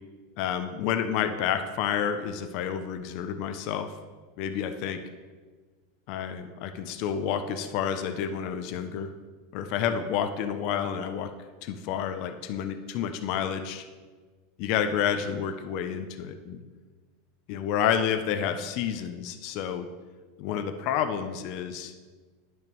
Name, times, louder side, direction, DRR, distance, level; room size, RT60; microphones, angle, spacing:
voice 1, 0.4-3.9 4.4-5.0 6.1-9.1 9.5-11.3 11.6-13.8 14.6-16.6 17.5-19.9 20.4-22.0, left 8 dB, 40° left, 8 dB, 0.5 m, -29 dB
10.5 x 5.8 x 3.1 m, 1.4 s
supercardioid pair, 180°, 0 cm